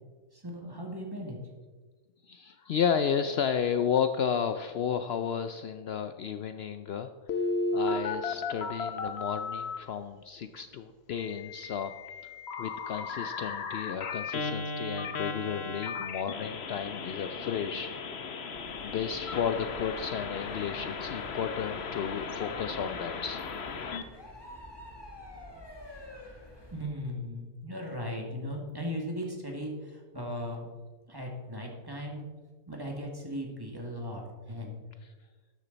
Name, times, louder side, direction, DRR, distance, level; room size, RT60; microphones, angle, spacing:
voice 1, 0.3-1.4 26.7-30.7 31.1-32.3 32.7-34.8, equal, 15° right, 0 dB, 2.0 m, -37 dB
voice 2, 2.3-7.1 7.7-11.9 12.6-17.9 18.8-23.4, left 7 dB, 80° left, 9 dB, 0.5 m, -32 dB
Telephone, 7.3-9.8 11.2-24.0, left 4 dB, 50° left, 1.0 m, -35 dB
sound 1, 18.5-26.9, left 1 dB, 15° left, 1.7 m, -49 dB
12.5 x 10.0 x 4.0 m, 1.4 s
omnidirectional pair, 1.7 m